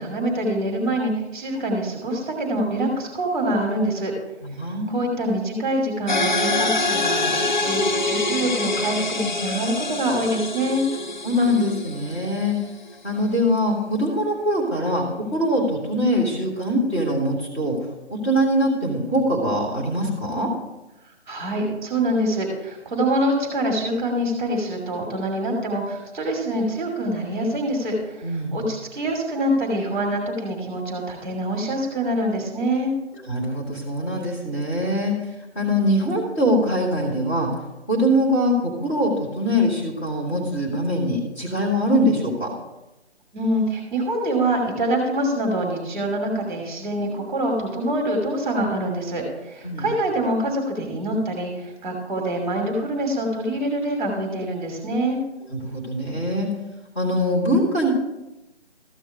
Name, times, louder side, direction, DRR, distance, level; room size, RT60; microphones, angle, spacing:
voice 1, 0.0-4.1 4.9-10.8 21.3-32.9 43.3-55.2, right 1 dB, 15° right, 0 dB, 2.3 m, -25 dB
voice 2, 4.4-5.0 11.2-12.6 13.0-17.8 18.1-20.5 28.2-28.6 33.2-35.1 35.5-37.5 37.9-42.5 49.6-49.9 55.5-56.5 56.9-57.9, equal, 10° left, -5 dB, 1.6 m, -23 dB
sound 1, 6.1-12.7, left 2 dB, 45° left, 0.5 m, -25 dB
14.0 x 6.1 x 4.8 m, 0.98 s
figure-of-eight pair, 150°, 34 cm